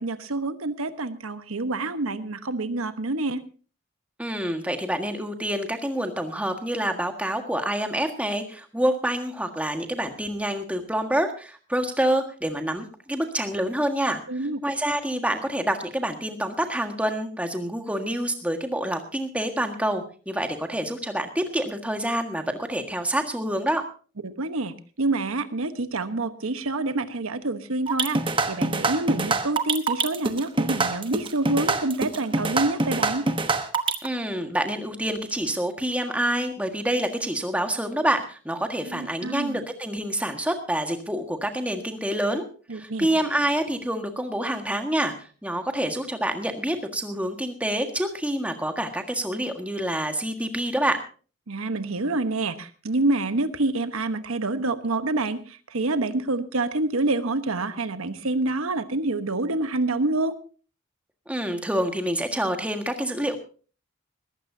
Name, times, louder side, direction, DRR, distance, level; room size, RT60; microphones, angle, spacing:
voice 1, 0.0-3.4 14.3-14.6 24.2-28.2 28.5-33.2 38.9-39.6 42.7-43.1 51.5-60.4, right 2 dB, 85° right, 11 dB, 1.1 m, -27 dB
voice 2, 4.2-23.8 34.0-42.5 42.7-51.0 61.3-63.4, right 1 dB, 5° right, 5 dB, 1.6 m, -27 dB
sound 1, 27.9-34.1, right 3 dB, 25° right, 1.0 m, -25 dB
20.5 x 15.0 x 2.7 m, 0.37 s
head